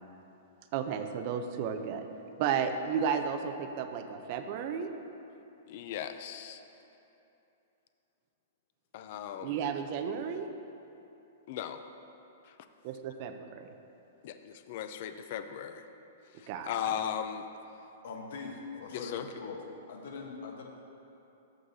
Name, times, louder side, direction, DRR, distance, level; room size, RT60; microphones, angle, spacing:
voice 1, 0.7-2.1 2.4-4.9 9.4-10.5 12.8-13.7 16.5-17.0, right 7 dB, 35° right, 7 dB, 0.5 m, -33 dB
voice 2, 5.7-6.6 8.9-9.6 11.5-11.8 14.2-15.9 16.4-17.5 18.9-19.3, left 9 dB, 45° left, 9 dB, 0.4 m, -37 dB
voice 3, 18.0-19.6 19.9-20.7, left 4 dB, 60° left, 2 dB, 1.1 m, -42 dB
14.5 x 6.4 x 2.7 m, 2.9 s
hypercardioid pair, 170°, 0 cm